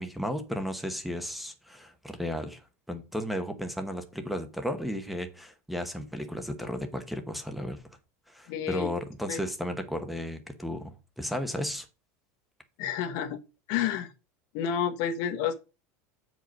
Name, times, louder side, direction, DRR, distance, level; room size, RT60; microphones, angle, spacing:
voice 1, 0.0-2.6 2.9-7.8 8.3-11.9, equal, ahead, 1.0 m, -34 dB
voice 2, 8.5-8.9 9.3-9.4 12.8-13.4 13.7-14.1 14.5-15.5, left 9 dB, 55° left, 1.2 m, -30 dB
7.8 x 5.1 x 5.3 m
supercardioid pair, 160°, 8 cm